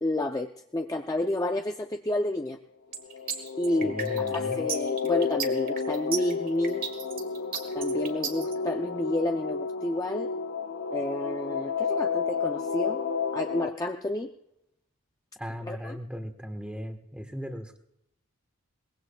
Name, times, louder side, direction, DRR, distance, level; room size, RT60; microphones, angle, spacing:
voice 1, 0.0-2.6 3.6-3.9 4.3-6.8 7.7-10.3 10.9-13.0 13.3-14.3 15.7-16.0, left 1 dB, 15° left, 4 dB, 0.5 m, -30 dB
sound 1, 2.9-8.5, right 7 dB, 40° right, 1.7 m, -34 dB
sound 2, 3.0-13.7, left 5 dB, 55° left, 0.7 m, -31 dB
voice 2, 3.7-4.6 15.4-17.8, equal, 5° right, 6 dB, 1.2 m, -37 dB
23.0 x 20.0 x 2.3 m, 0.79 s
head